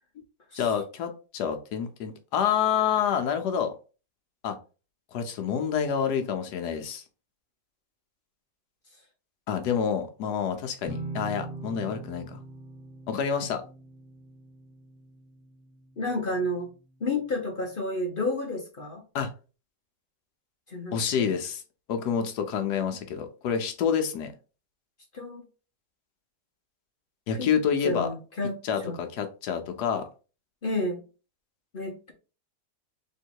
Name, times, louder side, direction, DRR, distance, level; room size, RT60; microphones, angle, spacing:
voice 1, 0.5-3.7 4.4-4.6 5.1-7.0 9.5-12.4 13.1-13.6 19.1-19.3 20.9-21.6 21.9-24.3 27.3-28.1 28.6-30.0, left 7 dB, 75° left, 1.2 m, -28 dB
sound 1, 10.9-16.5, right 2 dB, 5° right, 1.6 m, -42 dB
voice 2, 16.0-16.7 17.0-19.0 20.7-21.4 25.1-25.4 27.4-27.5 27.8-28.6 28.8-29.0 30.6-31.0 31.7-32.1, left 2 dB, 45° left, 0.8 m, -31 dB
3.7 x 3.1 x 4.5 m
omnidirectional pair, 1.8 m